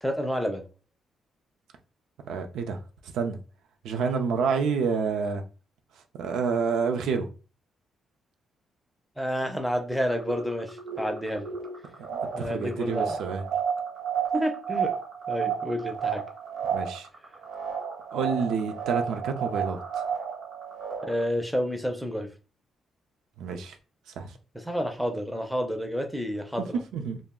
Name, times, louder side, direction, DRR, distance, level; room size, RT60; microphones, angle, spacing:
voice 1, 0.0-0.6 9.2-11.5 12.3-13.2 14.3-14.9 15.3-16.2 21.0-22.3 24.5-26.8, equal, ahead, 0.4 m, -29 dB
voice 2, 2.3-2.8 3.1-3.4 3.8-5.4 6.1-7.3 12.0-13.4 16.7-17.1 18.1-20.0 23.4-23.8 24.2-24.3 26.9-27.2, right 5 dB, 85° right, 0.4 m, -28 dB
sound 1, 9.9-21.2, right 7 dB, 70° right, 1.0 m, -32 dB
2.3 x 2.0 x 3.5 m
cardioid pair, 155°, 0 cm